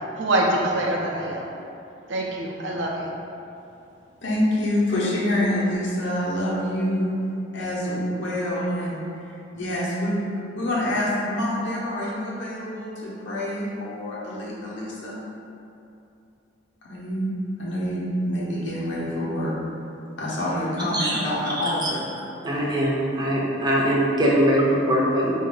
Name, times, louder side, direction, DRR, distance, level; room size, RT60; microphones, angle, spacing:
voice 1, 0.2-1.5 2.1-3.1, right 1 dB, 75° right, -1 dB, 0.6 m, -24 dB
voice 2, 4.2-7.1 7.5-9.2 9.5-10.2 10.6-15.2 16.8-19.6 20.2-22.0, left 1 dB, 75° left, -7 dB, 1.0 m, -26 dB
voice 3, 21.6-21.9 22.4-25.3, equal, 20° right, -4 dB, 0.6 m, -22 dB
4.2 x 2.6 x 3.8 m, 2.7 s
head